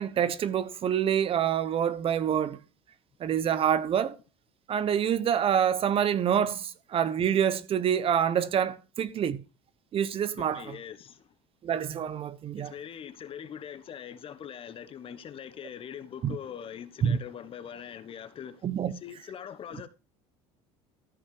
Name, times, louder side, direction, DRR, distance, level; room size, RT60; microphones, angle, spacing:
voice 1, 0.0-2.6 3.2-4.2 4.7-9.4 9.9-10.7 11.6-12.7 16.2-16.4 17.0-17.2 18.6-18.9, right 9 dB, 40° right, 1.0 m, -26 dB
voice 2, 10.3-11.2 12.6-19.9, left 8 dB, 40° left, 1.1 m, -42 dB
14.0 x 5.6 x 4.9 m
supercardioid pair, 105°, 14 cm